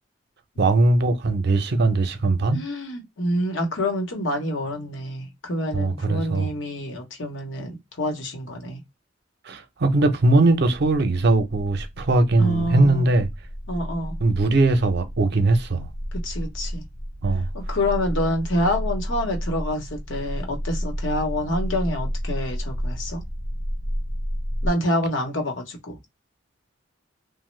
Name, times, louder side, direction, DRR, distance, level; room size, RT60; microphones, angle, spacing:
voice 1, 0.6-2.6 5.7-6.5 9.5-13.3 14.2-15.9 17.2-17.5, right 2 dB, 60° right, 0.6 m, -20 dB
voice 2, 2.5-8.8 12.4-13.0 13.7-14.2 16.2-16.8 17.5-23.2 24.6-26.0, left 1 dB, 80° left, 0.9 m, -27 dB
sound 1, 13.1-24.7, equal, 15° right, 0.4 m, -31 dB
3.0 x 2.1 x 3.1 m
head